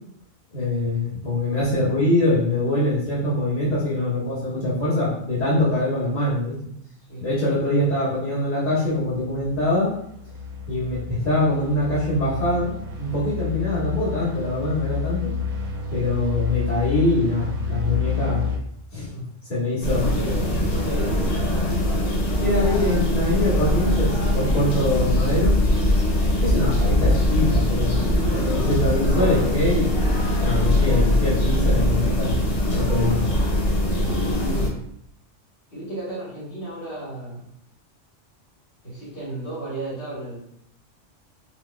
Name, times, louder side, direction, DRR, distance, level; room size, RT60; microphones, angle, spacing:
voice 1, 0.5-6.5 7.2-9.9 10.7-15.3 15.9-18.4 18.9-19.1 19.5-20.1 22.4-25.6 26.4-30.0 30.4-32.3 32.7-33.2, left 1 dB, 10° left, -10 dB, 1.3 m, -23 dB
sound 1, 8.9-18.6, left 5 dB, 60° right, 0.8 m, -30 dB
sound 2, 19.8-34.7, left 1 dB, 70° left, 1.1 m, -21 dB
voice 2, 20.0-21.3 34.0-34.9 35.7-37.5 38.8-40.4, right 1 dB, 50° left, -8 dB, 1.5 m, -34 dB
4.9 x 2.2 x 2.2 m, 0.71 s
omnidirectional pair, 1.3 m